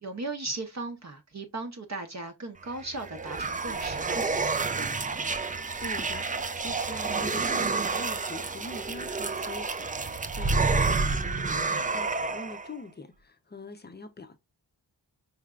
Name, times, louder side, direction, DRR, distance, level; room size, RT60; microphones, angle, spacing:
voice 1, 0.0-4.2, right 2 dB, 40° right, 0.7 m, -37 dB
sound 1, 2.7-12.7, right 4 dB, 20° right, 0.3 m, -29 dB
voice 2, 5.8-14.4, left 2 dB, 25° left, 0.6 m, -43 dB
4.8 x 3.2 x 2.3 m
wide cardioid pair, 80°, 44 cm